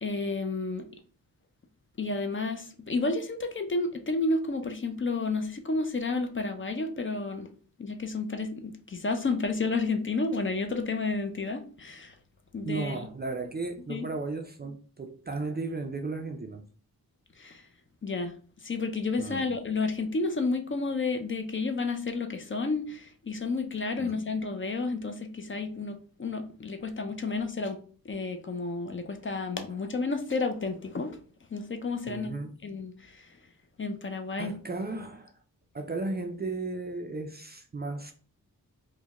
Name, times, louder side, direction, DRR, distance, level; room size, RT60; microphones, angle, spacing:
voice 1, 0.0-0.9 2.0-7.5 7.8-12.1 12.5-13.0 13.9-14.1 17.4-17.6 18.0-27.8 28.0-31.2 31.5-32.3 32.6-33.3 33.8-34.5, left 3 dB, 35° left, 0.4 m, -31 dB
voice 2, 12.7-16.6 19.2-19.5 24.0-24.2 27.3-27.4 32.1-32.5 34.4-35.3 35.7-38.1, right 3 dB, 30° right, 0.4 m, -35 dB
4.6 x 2.1 x 2.9 m
wide cardioid pair, 120°, 36 cm